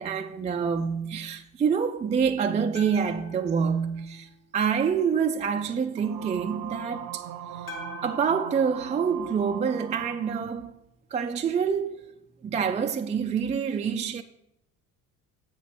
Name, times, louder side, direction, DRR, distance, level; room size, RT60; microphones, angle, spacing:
voice 1, 0.0-7.2 7.5-7.7 8.0-10.7 11.1-14.2, right 6 dB, 15° right, 0.4 m, -27 dB
sound 1, 2.7-4.9 7.7-10.0, left 3 dB, 90° left, 1.4 m, -47 dB
sound 2, 6.0-10.5, right 9 dB, 60° right, 0.9 m, -40 dB
7.4 x 6.0 x 5.8 m
figure-of-eight pair, 55°, 42 cm